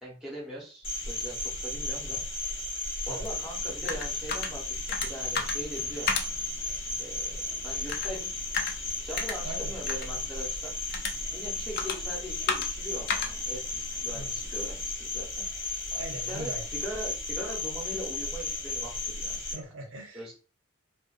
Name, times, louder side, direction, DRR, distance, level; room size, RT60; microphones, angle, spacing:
voice 1, 0.0-2.2 3.1-6.2 7.0-8.3 9.0-10.7 11.3-15.8 16.3-19.4 20.1-20.3, equal, 5° right, -4 dB, 0.8 m, -41 dB
Cricket, 0.8-19.5, left 2 dB, 65° left, 0.9 m, -34 dB
voice 2, 1.9-2.2 3.1-3.3 9.4-9.7 14.1-14.3 15.9-16.8 19.5-20.3, right 2 dB, 75° right, 3 dB, 0.6 m, -41 dB
sound 1, 3.2-14.9, left 5 dB, 50° left, 0.3 m, -37 dB
2.4 x 2.2 x 2.4 m, 0.36 s
head